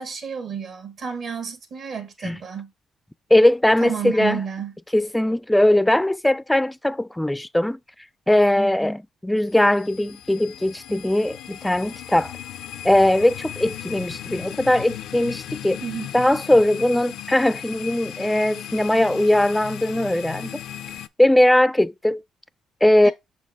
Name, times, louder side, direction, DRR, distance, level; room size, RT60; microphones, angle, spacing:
voice 1, 0.0-2.7 3.8-4.7 15.8-16.1 23.0-23.1, right 7 dB, 65° right, 1.4 m, -31 dB
voice 2, 3.3-4.4 4.9-7.8 8.3-12.3 12.8-15.8 16.1-20.6 21.2-22.2 22.8-23.1, left 1 dB, 5° left, 0.3 m, -20 dB
sound 1, 9.4-21.1, left 11 dB, 85° left, 0.4 m, -37 dB
6.2 x 4.3 x 3.5 m
cardioid pair, 90°, 0 cm